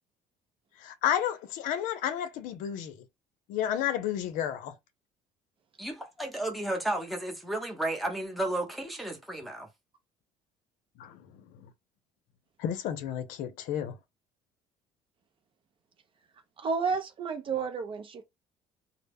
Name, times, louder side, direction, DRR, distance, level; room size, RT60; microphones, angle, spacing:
voice 1, 0.8-3.0 3.5-4.7 11.0-11.4 12.6-14.0, left 10 dB, 70° left, 0.5 m, -31 dB
voice 2, 5.8-9.7, right 1 dB, ahead, 0.7 m, -33 dB
voice 3, 16.6-18.2, right 5 dB, 40° right, 0.5 m, -31 dB
2.1 x 2.0 x 3.3 m
cardioid pair, 105°, 14 cm